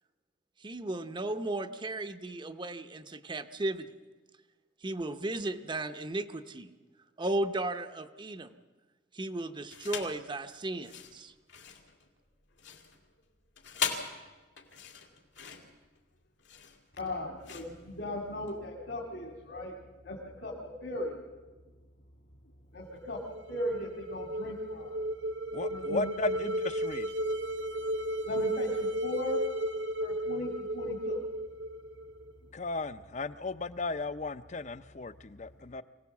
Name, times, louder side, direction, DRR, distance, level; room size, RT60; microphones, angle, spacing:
voice 1, 0.6-3.9 4.8-6.7 7.2-8.5 9.1-11.3, right 2 dB, 25° right, 10 dB, 0.7 m, -35 dB
sound 1, 9.7-10.2 10.7-18.6, left 6 dB, 80° left, 2.3 m, -40 dB
voice 2, 17.0-19.7 20.0-21.2 22.7-24.9 25.7-26.4 28.2-29.4 30.0-31.2, left 1 dB, 65° left, 0 dB, 2.2 m, -38 dB
sound 2, 23.1-32.3, right 1 dB, 65° right, 1.0 m, -34 dB
voice 3, 25.5-27.1 32.5-35.8, left 3 dB, 40° left, 14 dB, 0.6 m, -35 dB
23.5 x 17.5 x 7.2 m, 1.3 s
head